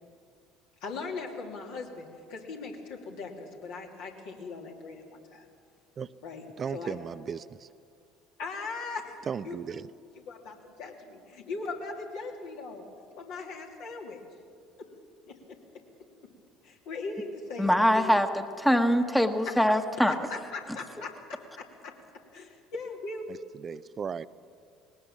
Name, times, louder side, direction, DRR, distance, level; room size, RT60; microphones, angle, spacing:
voice 1, 0.8-5.5 6.2-6.4 6.7-7.0 8.4-9.2 9.4-9.6 10.1-12.9 13.2-14.2 14.8-14.9 15.3-15.4 16.6-18.1 19.5-19.7 20.1-21.9 22.3-23.3, left 3 dB, 65° left, 0 dB, 2.9 m, -39 dB
voice 2, 6.6-7.7 9.3-9.9 23.6-24.3, right 6 dB, 35° right, 14 dB, 0.5 m, -35 dB
voice 3, 17.6-20.1, equal, 5° left, 7 dB, 1.3 m, -23 dB
20.0 x 18.5 x 7.3 m, 2.3 s
hypercardioid pair, 65°, 0 cm